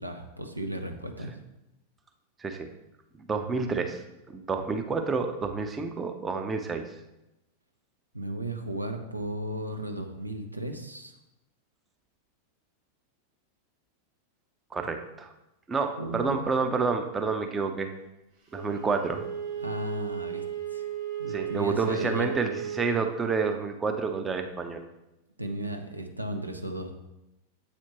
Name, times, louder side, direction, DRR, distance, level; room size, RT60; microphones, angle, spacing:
voice 1, 0.0-1.4 8.1-11.1 16.0-16.5 19.6-20.4 20.7-20.9 21.2-22.3 25.4-26.9, right 1 dB, 85° right, 5 dB, 0.5 m, -35 dB
voice 2, 3.2-4.0 4.3-6.8 14.7-15.3 15.7-17.9 18.5-19.2 21.3-24.8, right 4 dB, 15° right, 5 dB, 0.5 m, -29 dB
Wind instrument woodwind instrument, 18.5-23.0, right 9 dB, 40° right, 2.3 m, -35 dB
7.9 x 4.3 x 2.9 m, 0.92 s
figure-of-eight pair, 90°, 0 cm